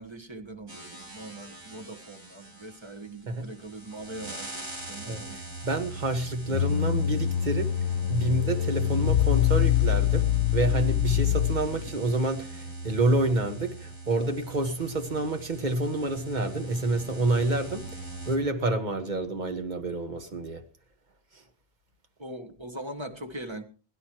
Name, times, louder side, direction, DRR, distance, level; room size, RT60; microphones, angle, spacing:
voice 1, 0.0-5.4 22.2-23.6, right 1 dB, 25° right, 1.5 m, -41 dB
sound 1, 0.7-18.4, right 2 dB, 85° right, 4.0 m, -42 dB
voice 2, 5.1-7.7 8.1-17.8 18.3-20.6, right 2 dB, 45° right, 1.6 m, -28 dB
sound 2, 6.5-11.9, left 11 dB, 80° left, 1.1 m, -25 dB
22.0 x 12.0 x 3.0 m
omnidirectional pair, 1.1 m